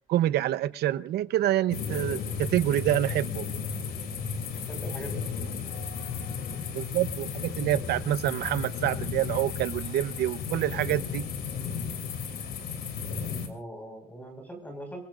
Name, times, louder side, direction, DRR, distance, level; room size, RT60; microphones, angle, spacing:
voice 1, 0.1-3.5 6.7-11.3, right 13 dB, 70° right, 0.8 m, -27 dB
sound 1, 1.7-13.5, left 6 dB, 60° left, 3.0 m, -34 dB
voice 2, 4.7-5.7 13.4-15.1, right 1 dB, 10° left, 5.2 m, -42 dB
26.5 x 21.5 x 2.5 m
cardioid pair, 175°, 17 cm